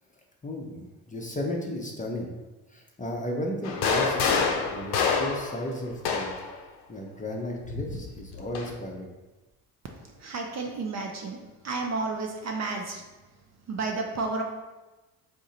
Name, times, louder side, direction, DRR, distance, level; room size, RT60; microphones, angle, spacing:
voice 1, 0.4-2.3 2.7-6.4 6.9-9.1, left 1 dB, 15° left, -1 dB, 0.6 m, -34 dB
sound 1, 3.6-6.5 7.7-8.7, left 5 dB, 50° left, 0.7 m, -27 dB
voice 2, 10.2-13.0 13.7-14.4, right 3 dB, 35° right, 2 dB, 0.5 m, -31 dB
3.6 x 2.1 x 4.1 m, 1.1 s
hypercardioid pair, 50°, 49 cm